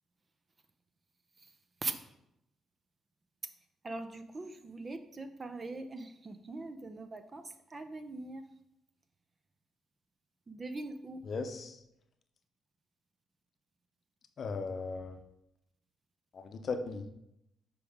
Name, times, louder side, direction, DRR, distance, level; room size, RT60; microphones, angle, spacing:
voice 1, 3.8-8.5 10.5-11.2, right 2 dB, 30° right, 9 dB, 0.6 m, -41 dB
voice 2, 11.3-11.8 14.4-15.2 16.3-17.0, left 4 dB, 50° left, 7 dB, 0.7 m, -37 dB
6.9 x 4.6 x 3.6 m, 0.82 s
cardioid pair, 90°, 0 cm